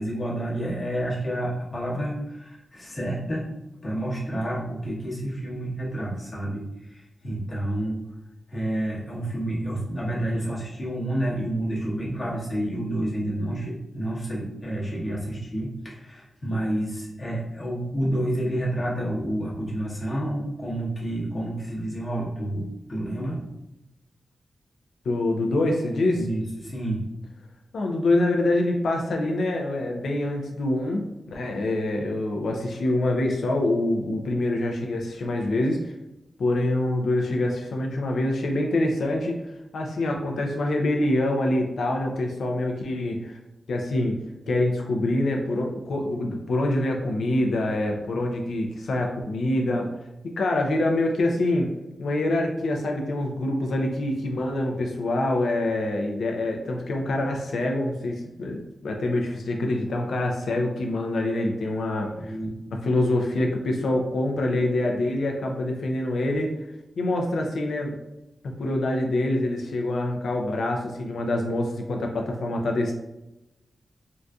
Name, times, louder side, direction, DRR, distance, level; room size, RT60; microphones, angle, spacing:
voice 1, 0.0-3.5 3.8-8.0 8.5-23.4 26.1-27.0 62.2-62.5, right 1 dB, 30° left, -6 dB, 1.0 m, -29 dB
voice 2, 25.1-26.2 27.7-35.9 36.4-39.4 39.7-43.4 43.7-44.2 44.5-49.9 50.4-51.7 52.0-62.3 62.8-66.5 67.0-67.9 68.6-72.9, left 1 dB, 85° left, 1 dB, 0.5 m, -25 dB
3.8 x 2.4 x 2.3 m, 0.94 s
wide cardioid pair, 155°, 0 cm